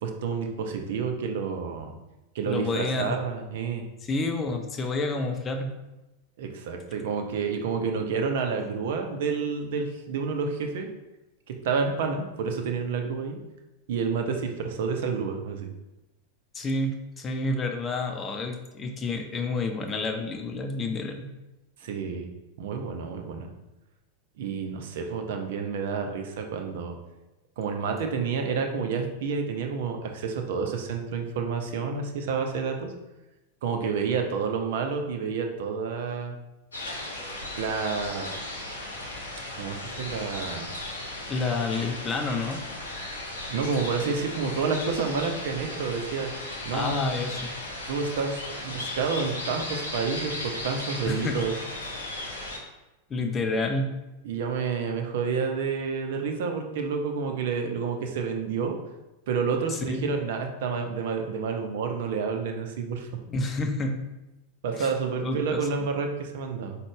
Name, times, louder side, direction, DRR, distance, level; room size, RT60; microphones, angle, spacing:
voice 1, 0.0-1.9 2.3-3.8 6.4-10.9 11.6-13.4 13.9-15.7 21.8-22.3 22.6-23.5 24.4-27.0 27.6-32.9 33.6-36.4 37.6-38.3 39.6-40.7 43.5-46.3 46.6-47.1 47.9-51.5 54.2-58.8 59.3-63.1 64.6-66.8, right 5 dB, 55° right, 4 dB, 0.5 m, -29 dB
voice 2, 2.4-3.2 4.0-5.7 16.5-21.3 41.3-42.6 46.7-47.6 51.0-51.3 52.5-52.6 53.1-53.9 59.7-60.1 63.3-64.0 64.7-64.9 65.2-65.7, left 3 dB, 20° left, 4 dB, 0.4 m, -29 dB
sound 1, 36.7-52.6, left 1 dB, 75° left, 0.7 m, -36 dB
3.7 x 2.2 x 3.5 m, 1.0 s
figure-of-eight pair, 90°, 0 cm